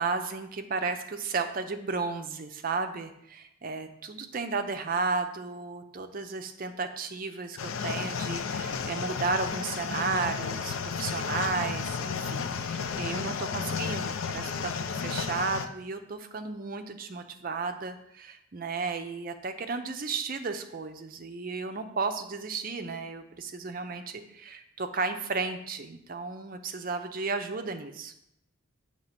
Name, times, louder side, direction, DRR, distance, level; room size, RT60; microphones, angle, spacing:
voice 1, 0.0-28.1, right 4 dB, 40° right, 7 dB, 0.5 m, -33 dB
sound 1, 7.6-15.7, left 6 dB, 70° left, 0.4 m, -33 dB
7.3 x 2.9 x 5.7 m, 0.78 s
head